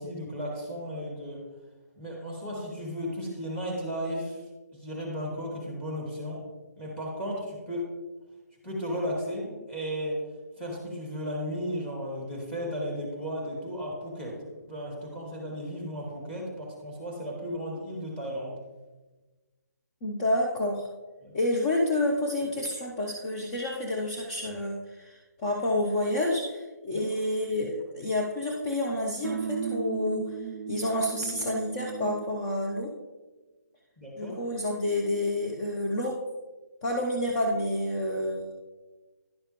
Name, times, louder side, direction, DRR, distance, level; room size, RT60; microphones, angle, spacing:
voice 1, 0.0-1.4 2.0-4.4 4.8-6.4 6.8-7.9 8.6-10.2 10.6-18.5 21.2-21.3 26.9-27.2 34.0-34.4, equal, 10° left, -2 dB, 2.3 m, -34 dB
voice 2, 20.0-20.9 21.3-30.3 30.7-32.9 34.2-36.2 36.8-38.5, left 1 dB, 25° left, -2 dB, 0.9 m, -29 dB
sound 1, 29.2-32.4, right 7 dB, 55° right, 0.5 m, -35 dB
10.5 x 6.7 x 3.1 m, 1.2 s
figure-of-eight pair, 145°, 9 cm